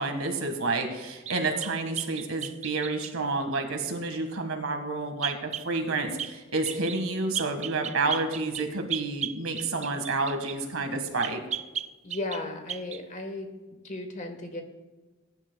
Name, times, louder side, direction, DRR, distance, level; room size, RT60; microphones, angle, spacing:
voice 1, 0.0-11.4, right 3 dB, 80° right, 5 dB, 1.8 m, -29 dB
sound 1, 1.3-3.2 5.2-5.7 6.2-6.4 6.7-7.0 7.3-10.6 11.2-12.4 12.7-13.0, right 9 dB, 35° right, 0.4 m, -35 dB
voice 2, 12.0-13.5 13.8-14.6, left 2 dB, 35° left, 5 dB, 1.4 m, -35 dB
20.0 x 10.5 x 2.3 m, 1.2 s
head